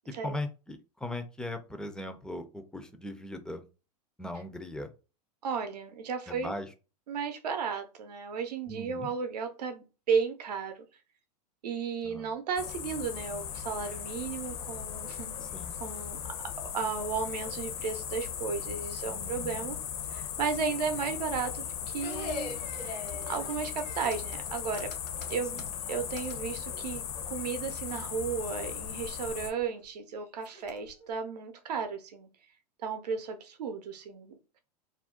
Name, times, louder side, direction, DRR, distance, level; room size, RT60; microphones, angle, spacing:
voice 1, 0.2-3.7 4.2-4.9 6.3-6.7 8.7-9.1 12.0-12.3 15.4-15.7 19.1-19.7 25.5-25.7, left 1 dB, 5° left, 8 dB, 0.3 m, -39 dB
voice 2, 5.4-6.6 7.1-10.8 11.6-15.4 15.8-16.2 16.7-19.8 20.1-22.5 22.8-24.9 25.3-25.6 25.9-27.0 27.3-32.3 32.8-34.6, right 5 dB, 80° right, 7 dB, 0.6 m, -34 dB
sound 1, 12.6-29.5, left 9 dB, 60° left, 0.6 m, -38 dB
sound 2, 22.0-26.4 26.7-27.2 27.9-28.1 28.4-28.7 29.2-29.8 30.4-31.1, left 4 dB, 85° left, 1.1 m, -43 dB
2.5 x 2.1 x 3.6 m, 0.32 s
hypercardioid pair, 105°, 20 cm